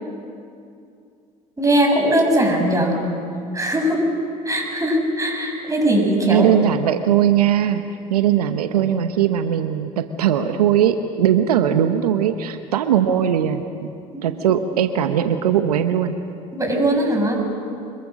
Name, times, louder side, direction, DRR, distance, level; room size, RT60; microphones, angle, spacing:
voice 1, 1.6-3.0 3.5-4.1 4.5-6.5 14.1-14.2 16.5-17.5, right 1 dB, 15° right, 1 dB, 7.4 m, -20 dB
voice 2, 6.3-7.8 8.1-13.9 14.2-16.1, right 9 dB, 85° right, 9 dB, 0.9 m, -19 dB
26.5 x 22.0 x 6.4 m, 2.5 s
hypercardioid pair, 65°, 19 cm